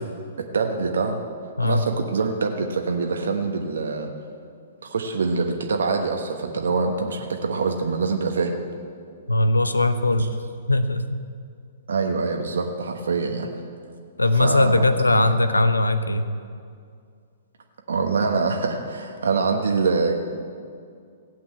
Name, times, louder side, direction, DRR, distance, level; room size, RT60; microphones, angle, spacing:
voice 1, 0.4-1.2 1.6-4.1 4.8-8.5 11.9-13.5 14.4-14.9 17.9-20.2, right 4 dB, 65° right, 4 dB, 1.2 m, -24 dB
voice 2, 9.3-10.3 10.7-11.0 14.2-16.2, left 2 dB, 85° left, 11 dB, 0.8 m, -19 dB
16.5 x 8.3 x 8.2 m, 2.3 s
figure-of-eight pair, 115°, 0 cm